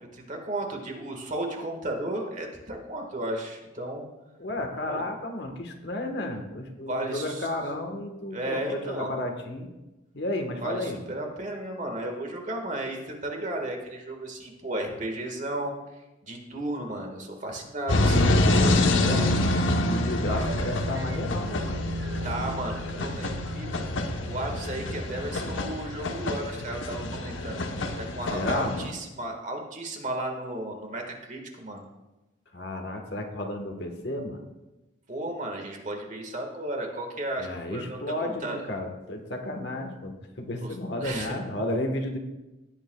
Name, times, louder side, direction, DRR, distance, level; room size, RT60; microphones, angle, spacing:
voice 1, 0.1-4.1 4.9-5.0 6.9-7.5 8.3-9.1 10.6-19.3 22.2-23.8 24.2-27.6 28.0-31.9 35.1-38.6 40.6-40.7 41.0-41.3, right 1 dB, 40° right, 2 dB, 1.7 m, -34 dB
voice 2, 4.4-9.7 10.1-11.0 19.8-21.8 28.3-29.0 32.5-34.4 37.4-42.2, left 1 dB, 60° left, 4 dB, 1.4 m, -32 dB
sound 1, 17.9-28.9, left 2 dB, 80° left, 1.0 m, -26 dB
sound 2, 20.3-25.0, right 1 dB, 90° right, 0.6 m, -37 dB
17.5 x 9.0 x 2.3 m, 1.0 s
head